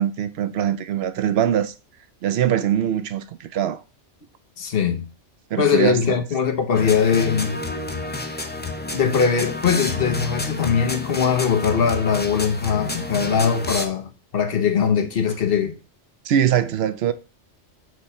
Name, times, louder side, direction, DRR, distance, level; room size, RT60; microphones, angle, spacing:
voice 1, 0.0-1.7 2.2-3.8 5.5-6.2 16.3-17.1, right 10 dB, 65° right, 0.8 m, -22 dB
voice 2, 4.6-5.1 5.6-7.6 8.9-15.8, left 7 dB, 55° left, 1.0 m, -21 dB
sound 1, 6.7-13.9, left 2 dB, 15° left, 0.4 m, -30 dB
6.2 x 3.0 x 5.5 m
omnidirectional pair, 1.2 m